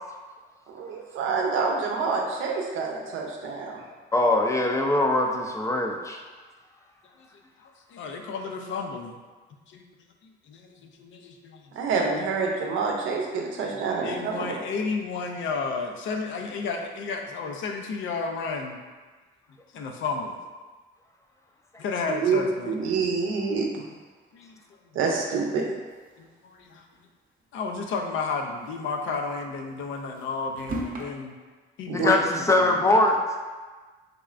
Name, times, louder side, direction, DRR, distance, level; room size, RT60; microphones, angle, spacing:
voice 1, 0.7-3.8 11.7-14.5 22.1-23.7 24.9-25.6 31.9-32.1, right 4 dB, 90° right, 0 dB, 0.6 m, -27 dB
voice 2, 4.1-6.2 31.9-33.2, left 2 dB, 15° left, 2 dB, 0.4 m, -22 dB
voice 3, 7.9-9.2 9.7-9.9 10.2-11.6 13.3-13.5 14.0-18.8 19.7-20.4 21.8-22.9 24.3-24.6 26.2-26.8 27.5-31.4 31.8-32.2 32.5-32.7, left 4 dB, 75° left, 3 dB, 0.5 m, -32 dB
sound 1, 25.9-27.0 27.4-27.5 27.7-27.8 28.4-31.0, right 1 dB, 45° right, 0.7 m, -39 dB
3.4 x 3.2 x 2.4 m, 1.4 s
cardioid pair, 90°, 20 cm